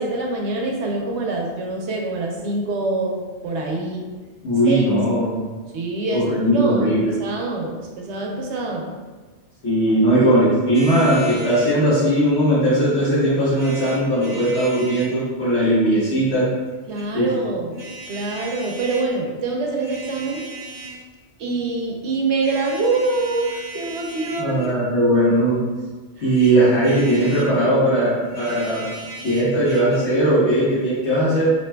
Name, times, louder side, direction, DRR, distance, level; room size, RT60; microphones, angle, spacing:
voice 1, 0.0-4.0 4.7-4.9 5.7-8.9 16.9-20.4 20.8-21.0 21.4-24.6, right 3 dB, 75° right, 0 dB, 0.9 m, -25 dB
voice 2, 4.4-5.4 6.1-7.1 9.6-16.4 17.1-17.3 24.4-25.6 26.2-28.8 29.2-31.5, right 1 dB, 70° left, -9 dB, 1.4 m, -18 dB
sound 1, 10.7-11.8 13.5-15.1 16.6-17.1 17.7-19.1 19.7-21.0 22.4-24.8 26.2-27.6 28.2-30.0, right 2 dB, 35° right, 0.4 m, -37 dB
5.0 x 2.9 x 2.2 m, 1.3 s
omnidirectional pair, 1.2 m